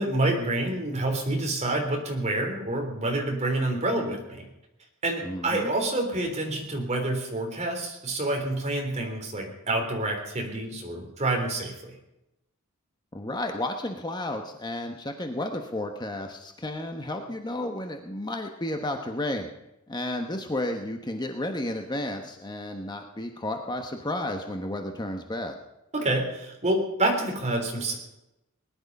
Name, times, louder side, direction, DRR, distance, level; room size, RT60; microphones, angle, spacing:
voice 1, 0.0-4.5 5.0-11.9 25.9-28.0, right 2 dB, 30° right, 2 dB, 3.4 m, -28 dB
voice 2, 5.2-5.7 13.1-19.5 19.9-25.6, left 1 dB, 20° left, 4 dB, 1.1 m, -32 dB
20.0 x 11.0 x 5.4 m, 0.88 s
head